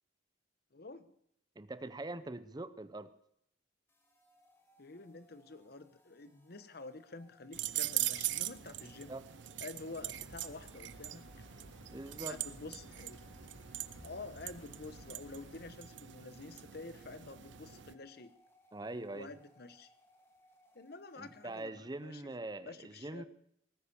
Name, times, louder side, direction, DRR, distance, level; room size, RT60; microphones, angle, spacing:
voice 1, 0.7-1.1 4.8-9.2 9.6-11.2 12.2-13.2 14.0-18.3 19.1-19.9 20.7-22.2 22.6-23.3, left 3 dB, 55° left, 13 dB, 1.1 m, -49 dB
voice 2, 1.6-3.1 9.1-9.2 11.9-12.4 18.7-19.3 21.2-23.2, right 2 dB, 20° right, 14 dB, 0.6 m, -43 dB
sound 1, 3.9-22.1, left 1 dB, 15° left, 2.0 m, -67 dB
sound 2, 7.5-17.9, right 14 dB, 70° right, 0.6 m, -42 dB
sound 3, 9.9-15.7, equal, 75° left, 3.2 m, -57 dB
18.0 x 10.0 x 7.0 m, 0.72 s
head